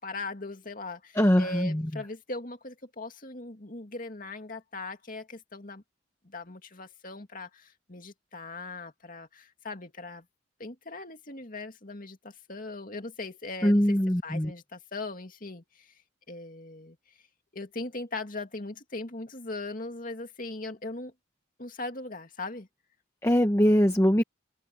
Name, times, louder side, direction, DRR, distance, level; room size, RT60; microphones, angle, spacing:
voice 1, 0.0-5.8 6.2-10.2 10.6-14.0 14.2-15.9 16.3-17.0 17.5-21.1 21.6-22.7, left 2 dB, 45° left, 2.4 m, -39 dB
voice 2, 1.2-1.8 13.6-14.5 23.2-24.2, equal, 15° left, 1.0 m, -22 dB
head